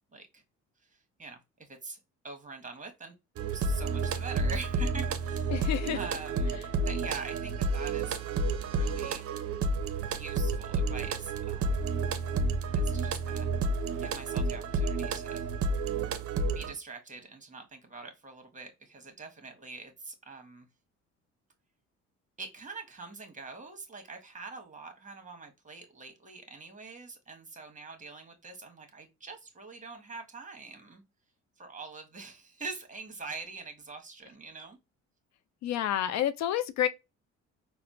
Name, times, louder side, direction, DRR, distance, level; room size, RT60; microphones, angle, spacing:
voice 1, 0.1-0.4 0.9-3.1 3.5-5.6 5.9-8.2 8.5-9.3 10.1-11.9 12.7-13.5 14.0-15.5 16.5-20.7 22.4-31.0 31.6-34.8, right 4 dB, 25° right, 1.2 m, -44 dB
sound 1, 3.4-16.7, right 3 dB, 50° right, 0.6 m, -30 dB
voice 2, 5.5-6.0 35.6-36.9, left 11 dB, 65° left, 0.4 m, -29 dB
4.1 x 2.0 x 2.5 m
supercardioid pair, 80°, 30 cm